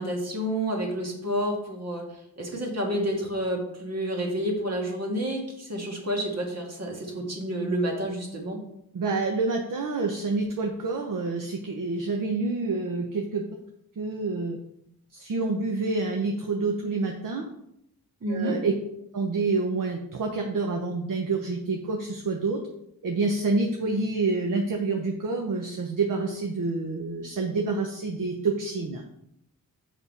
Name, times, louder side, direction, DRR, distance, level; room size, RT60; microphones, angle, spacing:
voice 1, 0.0-2.1 2.4-8.6 18.2-18.6, equal, 45° right, 0 dB, 1.8 m, -29 dB
voice 2, 8.9-13.4 14.0-14.6 15.1-17.4 18.3-18.7 19.1-22.6 23.0-29.0, right 3 dB, 60° right, 2 dB, 0.8 m, -28 dB
7.1 x 5.5 x 4.2 m, 0.77 s
wide cardioid pair, 160°, 36 cm